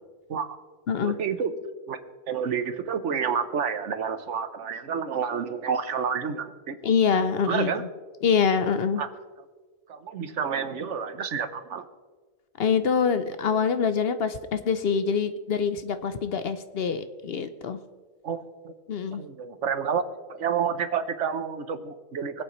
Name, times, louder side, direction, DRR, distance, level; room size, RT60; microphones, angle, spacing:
voice 1, 1.0-1.5 1.9-6.8 7.5-7.8 9.0-9.1 9.9-11.9 18.2-18.7 19.1-20.0 20.3-22.4, right 7 dB, 75° right, 11 dB, 1.2 m, -29 dB
voice 2, 6.8-7.9 8.2-9.0 12.6-17.8 18.9-19.2, left 6 dB, 60° left, 10 dB, 0.8 m, -25 dB
24.0 x 8.4 x 3.1 m, 1.4 s
omnidirectional pair, 1.3 m